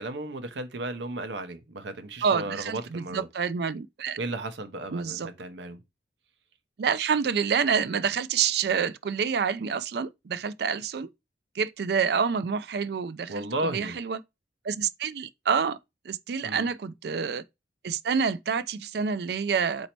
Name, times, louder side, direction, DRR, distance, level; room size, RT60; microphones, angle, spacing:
voice 1, 0.0-3.3 4.2-5.8 13.3-14.0 16.4-16.7, right 2 dB, 75° right, 0.8 m, -34 dB
voice 2, 2.2-4.2 4.9-5.3 6.8-11.1 11.6-14.2 14.6-15.8 16.1-17.4 17.8-19.9, right 6 dB, 60° right, 0.4 m, -27 dB
4.2 x 2.7 x 4.4 m
head